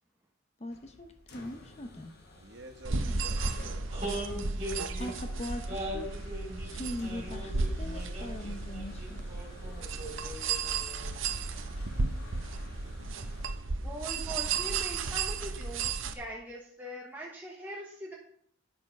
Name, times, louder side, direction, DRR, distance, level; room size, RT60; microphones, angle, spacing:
voice 1, 0.6-2.1 2.9-3.2 5.0-6.1 6.6-9.3, left 1 dB, 30° left, 7 dB, 0.8 m, -41 dB
sound 1, 0.7-13.5, left 1 dB, 55° left, 1.7 m, -52 dB
voice 2, 2.4-4.3, right 2 dB, 60° right, 3 dB, 1.3 m, -49 dB
sound 2, 2.8-16.1, right 4 dB, 75° right, 0.8 m, -34 dB
voice 3, 3.9-5.1 5.7-11.2, equal, 30° right, -2 dB, 3.8 m, -41 dB
voice 4, 13.8-18.1, right 1 dB, 10° right, -3 dB, 1.1 m, -42 dB
9.7 x 7.0 x 5.2 m, 0.64 s
head